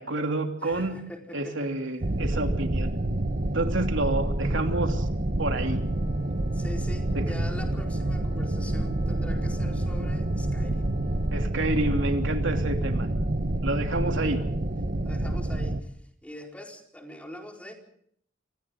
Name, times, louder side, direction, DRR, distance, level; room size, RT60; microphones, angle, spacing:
voice 1, 0.0-1.0 1.3-2.9 3.5-5.1 5.4-5.8 7.1-7.2 11.3-13.1 13.6-14.4, right 2 dB, 80° right, 4 dB, 3.1 m, -29 dB
voice 2, 0.6-1.7 6.5-10.9 15.0-16.0 16.2-17.7, left 1 dB, 5° left, 1 dB, 4.5 m, -43 dB
sound 1, 2.0-15.8, right 1 dB, 45° right, 1.2 m, -28 dB
sound 2, 5.7-11.5, left 7 dB, 85° left, 4.6 m, -53 dB
29.0 x 26.0 x 3.8 m, 0.65 s
head